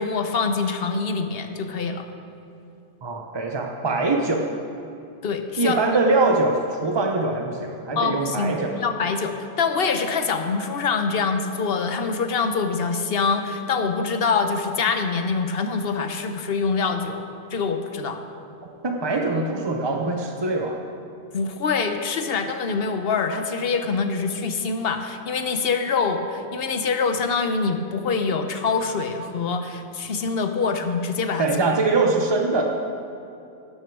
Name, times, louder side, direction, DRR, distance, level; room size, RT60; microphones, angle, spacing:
voice 1, 0.0-2.1 5.2-5.8 8.0-9.3 9.6-18.2 21.3-31.5, left 5 dB, 50° left, 7 dB, 0.8 m, -25 dB
voice 2, 3.0-4.4 5.6-8.8 18.8-20.8 31.4-32.6, right 3 dB, 30° right, 2 dB, 0.4 m, -23 dB
12.0 x 11.5 x 4.7 m, 2.7 s
omnidirectional pair, 1.6 m